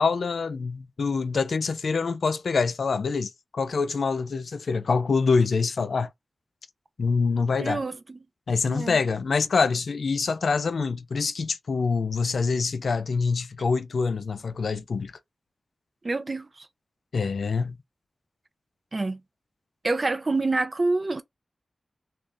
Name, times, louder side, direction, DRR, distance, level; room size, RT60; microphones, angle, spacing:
voice 1, 0.0-6.1 7.0-7.8 8.5-15.1 17.1-17.8, left 4 dB, 85° left, 0.3 m, -25 dB
voice 2, 7.6-8.2 8.6-9.0 16.0-16.7 18.9-19.2 19.8-21.2, right 3 dB, 50° right, 0.5 m, -27 dB
2.5 x 2.4 x 3.3 m
cardioid pair, 45°, 0 cm